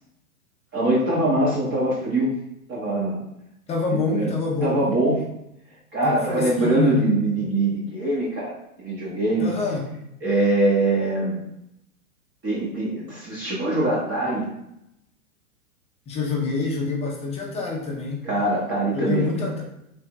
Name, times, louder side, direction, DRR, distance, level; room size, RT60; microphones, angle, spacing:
voice 1, 0.7-2.3 2.7-3.2 3.9-4.3 4.6-5.2 5.9-9.5 10.2-11.4 12.4-14.4 18.2-19.5, right 2 dB, 25° right, -6 dB, 1.0 m, -23 dB
voice 2, 3.7-4.8 6.0-7.1 9.4-9.9 16.1-18.3 18.9-19.6, left 4 dB, 15° left, -2 dB, 0.6 m, -26 dB
3.5 x 3.3 x 3.0 m, 0.81 s
hypercardioid pair, 115°, 44 cm